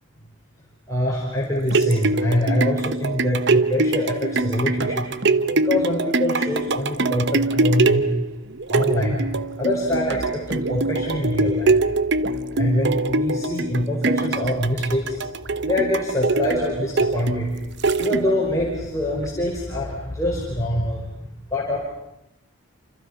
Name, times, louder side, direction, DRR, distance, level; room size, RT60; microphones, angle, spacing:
voice 1, 0.9-5.0 5.4-8.1 8.7-9.2 9.6-11.7 12.5-15.1 15.6-17.5 18.0-21.0 21.5-21.8, left 1 dB, 15° left, -4 dB, 5.1 m, -24 dB
sound 1, 1.4-18.6 19.1-19.2, right 3 dB, 55° right, 0.9 m, -23 dB
29.0 x 27.5 x 5.8 m, 0.83 s
head